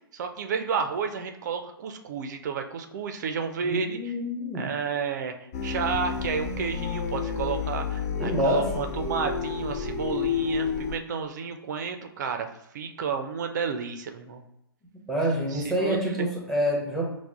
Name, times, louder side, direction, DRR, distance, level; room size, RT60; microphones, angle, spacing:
voice 1, 0.1-4.1 4.5-5.3 5.6-14.4 15.5-16.0, right 6 dB, 45° right, 6 dB, 0.4 m, -31 dB
voice 2, 3.6-4.7 8.2-8.8 15.1-17.1, equal, 5° left, -3 dB, 0.8 m, -27 dB
sound 1, 5.5-11.0, left 6 dB, 40° left, 0.4 m, -30 dB
5.7 x 2.1 x 2.3 m, 0.82 s
figure-of-eight pair, 120°, 13 cm